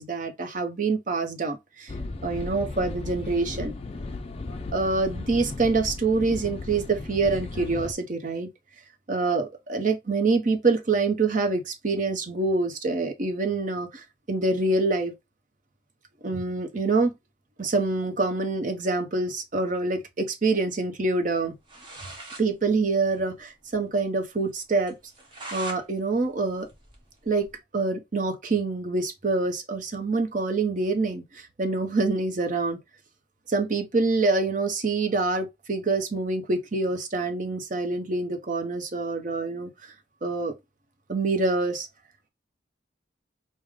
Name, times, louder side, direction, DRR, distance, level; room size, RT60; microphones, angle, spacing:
voice 1, 0.0-1.9 2.2-3.7 4.7-8.5 9.1-15.1 16.2-17.1 17.6-21.5 22.4-24.9 25.5-26.7 27.3-27.5 27.7-32.8 33.5-39.7 40.2-40.5 41.1-41.9, right 3 dB, 45° right, 0.7 m, -26 dB
sound 1, 1.9-7.9, left 2 dB, 35° left, 0.4 m, -35 dB
sound 2, 21.4-21.5 21.7-22.5 22.8-22.9 23.2-23.3 23.7-23.8 24.2-24.3 24.9-25.8 26.2-27.6, right 2 dB, 25° right, 1.1 m, -41 dB
4.8 x 2.1 x 3.5 m
head